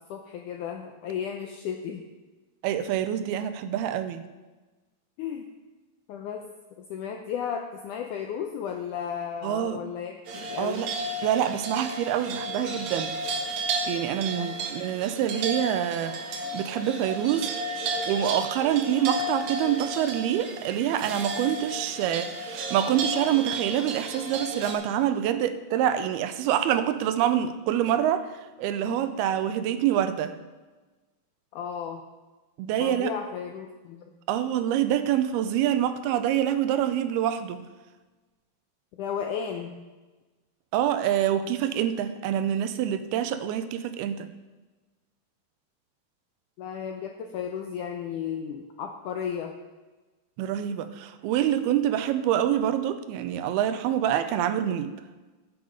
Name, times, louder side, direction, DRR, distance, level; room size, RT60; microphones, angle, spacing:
voice 1, 0.1-2.0 5.2-5.5 6.1-6.4 6.8-10.9 14.3-14.7 28.9-29.0 31.5-32.0 32.8-34.1 39.0-39.8 46.6-49.5, left 8 dB, 80° left, 3 dB, 1.8 m, -34 dB
voice 2, 2.6-4.2 9.4-9.8 10.6-10.9 11.2-13.1 13.9-16.2 16.5-17.5 18.1-28.3 28.6-30.3 32.6-33.1 34.3-37.6 40.7-44.3 50.4-54.9, right 10 dB, 90° right, 11 dB, 2.6 m, -26 dB
sound 1, 10.3-24.7, right 2 dB, 60° right, 2.2 m, -33 dB
14.5 x 8.0 x 5.0 m, 1.2 s
omnidirectional pair, 4.5 m